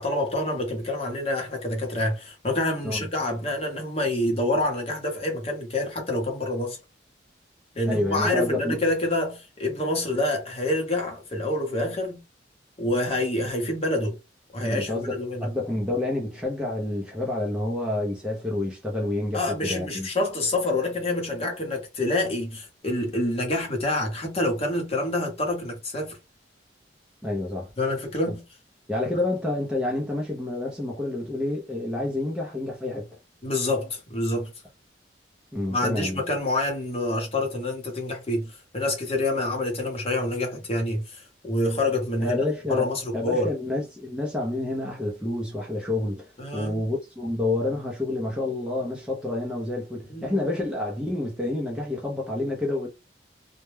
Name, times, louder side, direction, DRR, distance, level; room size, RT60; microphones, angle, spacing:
voice 1, 0.0-6.8 7.7-12.2 12.8-14.2 14.5-15.5 19.3-26.2 27.8-28.4 33.4-34.5 35.7-42.4 42.7-43.5 46.4-46.8 50.1-50.4, left 1 dB, 35° left, 0.8 m, -27 dB
voice 2, 7.9-8.8 14.6-20.1 27.2-27.7 28.3-28.4 28.9-33.1 35.5-36.2 42.2-42.9 43.1-52.9, left 2 dB, 5° right, 0.5 m, -28 dB
2.2 x 2.1 x 3.1 m
head